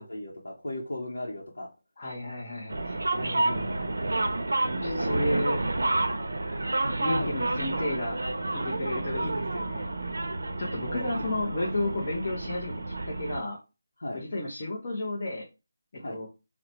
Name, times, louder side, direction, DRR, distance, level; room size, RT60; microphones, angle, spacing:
voice 1, 0.0-1.7 3.3-3.6 4.8-5.2 7.1-7.3 10.8-11.1 14.0-14.2 16.0-16.2, left 1 dB, 80° left, -3 dB, 0.7 m, -36 dB
voice 2, 2.0-3.7 4.7-5.6 7.0-8.2 8.5-10.2 10.6-12.8 13.1-13.6 14.1-15.4 16.0-16.3, left 1 dB, 25° left, -4 dB, 0.6 m, -32 dB
sound 1, 2.7-13.4, right 2 dB, 80° right, 0.6 m, -30 dB
2.9 x 2.1 x 4.0 m, 0.28 s
figure-of-eight pair, 175°, 0 cm